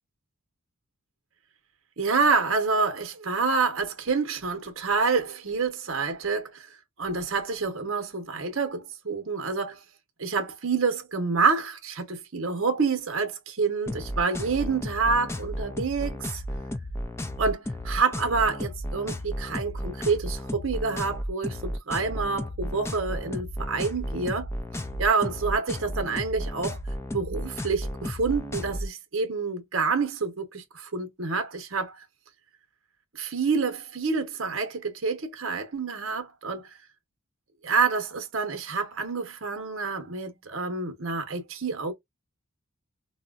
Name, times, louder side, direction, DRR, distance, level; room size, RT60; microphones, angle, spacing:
voice 1, 2.0-6.7 7.0-9.8 10.2-16.4 17.4-24.5 25.0-26.8 27.1-32.0 33.1-36.7 37.6-41.9, right 4 dB, 60° right, 0.8 m, -27 dB
sound 1, 13.9-28.9, equal, 10° left, 0.3 m, -33 dB
4.1 x 2.1 x 2.3 m
head